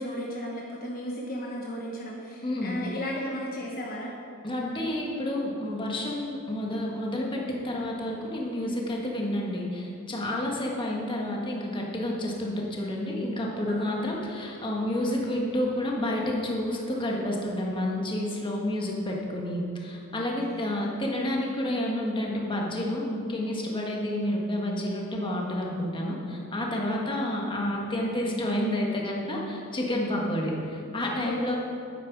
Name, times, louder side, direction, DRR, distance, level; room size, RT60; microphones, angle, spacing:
voice 1, 0.0-4.1 10.3-10.6 13.7-14.1 20.2-20.7 26.8-27.0 31.2-31.6, equal, 40° left, -3 dB, 1.3 m, -35 dB
voice 2, 2.4-2.7 4.4-31.6, left 1 dB, 20° left, -2 dB, 1.5 m, -30 dB
11.0 x 9.4 x 4.7 m, 2.6 s
head